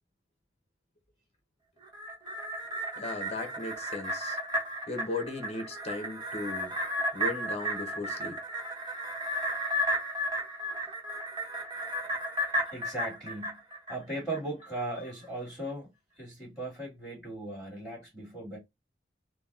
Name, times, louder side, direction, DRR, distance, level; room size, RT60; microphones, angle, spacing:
sound 1, 1.8-14.4 14.8-14.9, equal, 25° right, 1.1 m, -34 dB
voice 1, 3.0-4.4 4.9-6.7 7.1-8.4, left 3 dB, 35° left, 1.2 m, -37 dB
voice 2, 12.7-13.6 13.9-15.9 16.2-18.6, right 1 dB, 5° right, 1.9 m, -38 dB
3.9 x 2.2 x 3.8 m
head